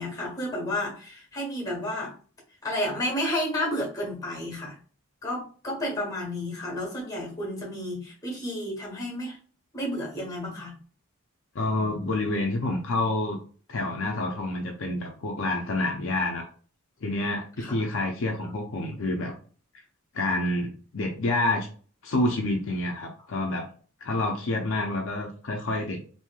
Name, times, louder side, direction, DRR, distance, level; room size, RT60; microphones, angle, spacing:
voice 1, 0.0-2.1 2.6-4.8 5.2-9.4 9.7-10.8 17.6-17.9, left 1 dB, 15° left, -1 dB, 1.2 m, -31 dB
voice 2, 11.5-13.4 13.7-16.5 17.0-19.3 20.1-21.7 22.0-23.7 24.0-26.1, left 2 dB, 60° left, 1 dB, 0.5 m, -28 dB
3.0 x 2.6 x 2.3 m, 0.41 s
head